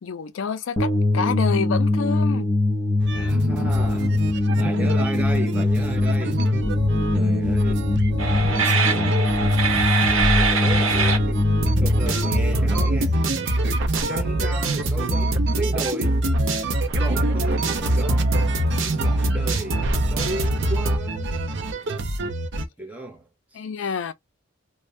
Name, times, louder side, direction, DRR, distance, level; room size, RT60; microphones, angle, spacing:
voice 1, 0.0-2.5 23.5-24.1, left 6 dB, 70° left, 0.4 m, -27 dB
sound 1, 0.8-13.9, left 2 dB, 25° left, 1.0 m, -22 dB
sound 2, 3.0-22.7, right 2 dB, 60° right, 0.6 m, -29 dB
voice 2, 3.1-4.2 4.6-6.5 7.1-7.9 8.3-9.2 10.0-11.4 11.8-13.2 14.1-16.2 17.0-18.3 18.8-21.4 22.8-23.2 23.5-23.9, right 1 dB, 5° right, 0.7 m, -34 dB
sound 3, 8.2-11.2 11.6-21.0, right 2 dB, 85° right, 0.9 m, -23 dB
2.5 x 2.1 x 3.2 m
head